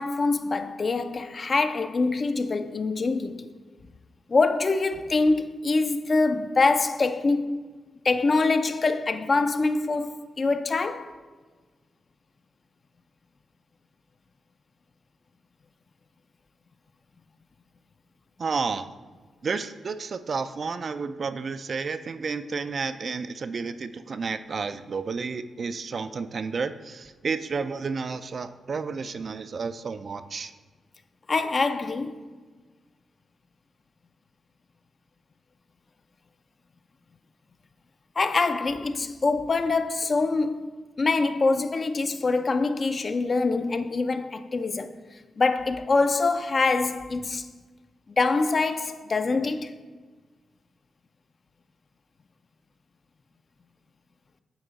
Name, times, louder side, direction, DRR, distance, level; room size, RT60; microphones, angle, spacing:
voice 1, 0.0-3.5 4.3-7.6 8.0-11.1 31.3-32.3 38.2-40.7 41.0-45.0 45.4-47.5 48.1-49.7, left 3 dB, 45° left, 0.4 m, -24 dB
voice 2, 18.4-18.9 19.4-30.5, right 5 dB, 55° right, 0.3 m, -31 dB
8.9 x 3.0 x 3.9 m
cardioid pair, 70°, 0 cm